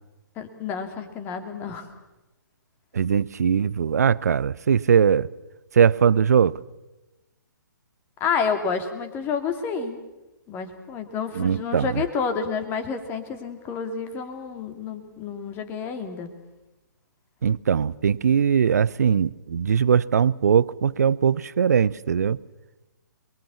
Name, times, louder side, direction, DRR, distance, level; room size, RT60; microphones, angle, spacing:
voice 1, 0.4-1.9 8.2-10.0 10.5-16.3, left 6 dB, 20° left, 2.8 m, -29 dB
voice 2, 2.9-5.3 5.7-6.6 11.3-12.0 17.4-22.4, right 7 dB, 50° right, 0.8 m, -20 dB
28.5 x 22.5 x 7.2 m
figure-of-eight pair, 130°, 11 cm